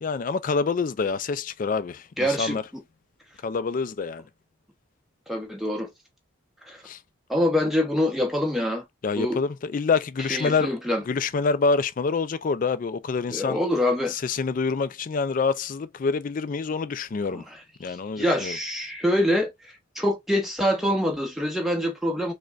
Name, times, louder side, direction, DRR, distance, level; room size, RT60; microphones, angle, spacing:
voice 1, 0.0-2.6 3.4-4.2 6.9-7.0 9.0-10.7 11.1-13.6 14.1-17.4 17.8-18.6, left 4 dB, 40° left, 0.3 m, -26 dB
voice 2, 2.2-2.6 5.3-5.9 6.7-6.8 7.3-8.8 9.2-9.4 10.3-11.0 13.3-14.1 17.3-17.4 17.9-22.3, left 1 dB, ahead, 0.8 m, -25 dB
5.0 x 2.2 x 2.3 m
head